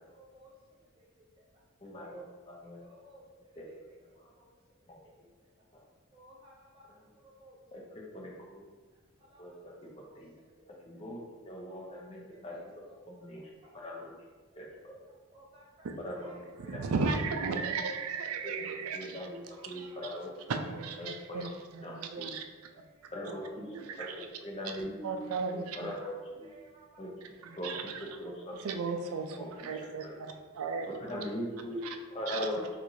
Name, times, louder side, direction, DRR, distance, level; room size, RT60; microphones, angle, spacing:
voice 1, 0.1-2.3 2.6-5.1 5.4-5.7 6.1-7.9 8.9-10.7 11.4-14.0 14.5-14.7 15.1-15.9 16.1-16.9 17.5-18.9 19.5-20.2 20.8-21.5 22.8-22.9 23.4-24.1 25.7-26.1 26.4-27.1 27.4-27.8 30.1-30.4 31.1-31.2 32.1-32.4, right 1 dB, 25° right, -5 dB, 0.4 m, -59 dB
voice 2, 1.8-2.8 3.6-3.7 4.2-4.3 5.7-5.8 7.7-8.6 9.4-10.3 10.9-12.6 13.1-13.4 13.7-14.1 14.6-15.0 16.0-16.3 16.6-16.9 18.4-20.3 21.0-21.5 21.8-21.9 22.2-22.3 23.1-23.7 24.0-25.3 25.5-26.5 27.0-27.1 27.6-27.9 28.2-28.5 28.8-28.9 29.4-29.7 30.0-30.1 31.0-31.8 32.1-32.8, left 1 dB, 30° left, -2 dB, 0.6 m, -40 dB
voice 3, 16.6-19.3 19.7-20.1 20.5-22.4 24.0-24.3 25.0-25.9 27.4-28.0 28.6-30.9 31.8-32.0 32.3-32.5, right 4 dB, 85° right, 5 dB, 0.4 m, -35 dB
4.5 x 2.5 x 2.6 m, 1.4 s
head